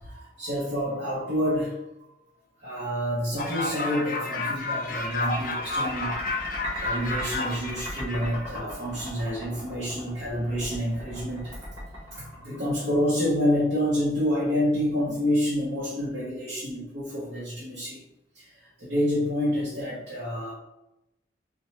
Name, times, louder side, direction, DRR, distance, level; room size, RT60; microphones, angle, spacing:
voice 1, 0.0-1.8 2.6-6.1 6.8-11.5 12.1-18.0 18.3-18.5 18.8-20.5, equal, 65° right, -7 dB, 1.0 m, -28 dB
sound 1, 3.4-8.5, left 2 dB, 45° left, 0.5 m, -31 dB
sound 2, 4.4-13.1, equal, 25° right, 1.4 m, -39 dB
4.4 x 2.2 x 3.0 m, 0.89 s
head